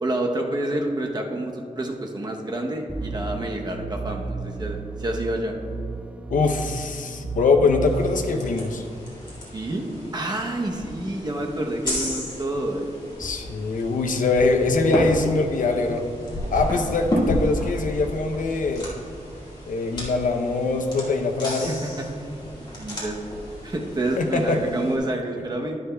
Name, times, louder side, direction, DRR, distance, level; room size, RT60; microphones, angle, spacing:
voice 1, 0.0-5.5 9.5-9.9 10.1-12.9 21.7-22.3 22.6-23.2 23.6-25.8, right 1 dB, 30° right, 1 dB, 0.8 m, -28 dB
sound 1, 2.9-8.5, right 4 dB, 10° right, 0.3 m, -33 dB
voice 2, 6.3-8.8 13.2-16.0 16.5-18.9 19.7-21.7 24.2-24.6, left 3 dB, 80° left, 4 dB, 0.7 m, -23 dB
sound 2, 7.8-25.0, equal, 35° left, 2.1 m, -32 dB
10.5 x 9.9 x 2.3 m, 2.4 s
wide cardioid pair, 145°, 13 cm